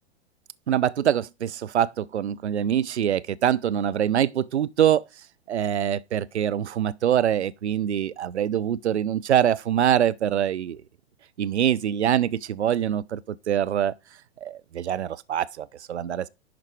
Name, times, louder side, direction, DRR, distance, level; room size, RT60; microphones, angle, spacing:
voice 1, 0.7-5.0 5.5-10.8 11.4-13.9 14.4-16.3, right 10 dB, 85° right, 0.5 m, -24 dB
11.0 x 4.0 x 4.7 m
figure-of-eight pair, 110°, 33 cm